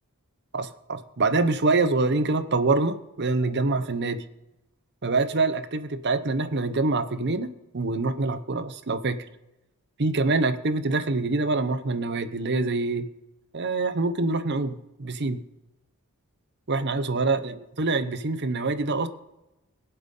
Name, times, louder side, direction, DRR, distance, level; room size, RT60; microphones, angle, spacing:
voice 1, 0.5-4.2 5.0-9.2 10.0-13.1 13.5-15.4 16.7-19.1, right 3 dB, 50° right, 11 dB, 0.8 m, -25 dB
22.0 x 7.9 x 3.8 m, 0.94 s
head